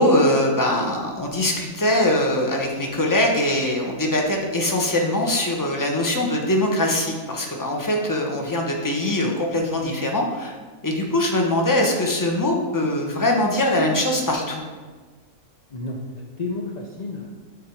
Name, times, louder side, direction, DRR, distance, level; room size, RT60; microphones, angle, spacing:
voice 1, 0.0-10.5 10.8-14.6, left 1 dB, 15° left, 0 dB, 0.7 m, -22 dB
voice 2, 15.7-17.4, left 2 dB, 50° left, -2 dB, 0.4 m, -31 dB
10.5 x 3.6 x 4.6 m, 1.4 s
omnidirectional pair, 1.7 m